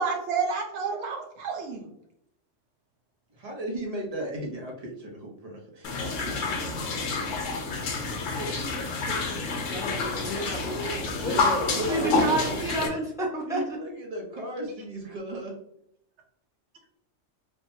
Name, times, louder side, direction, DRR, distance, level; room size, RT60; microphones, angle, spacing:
voice 1, 0.0-1.9 11.9-12.2, right 5 dB, 65° right, 1 dB, 1.0 m, -30 dB
voice 2, 3.3-6.4 11.1-12.6 13.5-15.5, right 1 dB, 35° right, -1 dB, 0.7 m, -35 dB
sound 1, 5.8-12.9, left 3 dB, 85° left, 1.0 m, -29 dB
voice 3, 8.3-11.4 11.9-13.6, right 1 dB, 5° right, -5 dB, 0.7 m, -32 dB
3.6 x 2.0 x 2.6 m, 0.75 s
omnidirectional pair, 1.3 m